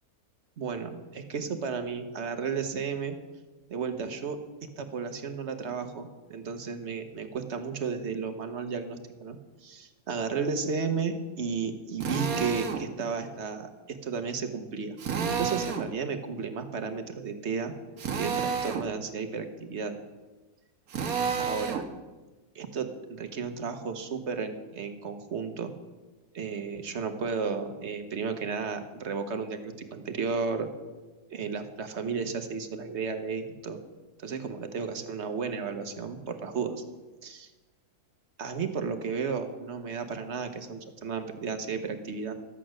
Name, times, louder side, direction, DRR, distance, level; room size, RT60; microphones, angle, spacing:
voice 1, 0.6-3.2 3.7-4.4 4.8-15.0 15.4-17.7 18.1-19.9 21.4-21.8 22.5-25.7 26.3-30.7 31.3-33.8 34.2-36.8 37.2-37.5 38.4-42.3, right 5 dB, 50° right, 7 dB, 1.2 m, -33 dB
Drill, 12.0-12.8 15.0-15.9 18.0-18.9 20.9-21.9, right 6 dB, 70° right, 1.4 m, -30 dB
12.5 x 8.5 x 6.3 m, 1.2 s
omnidirectional pair, 1.7 m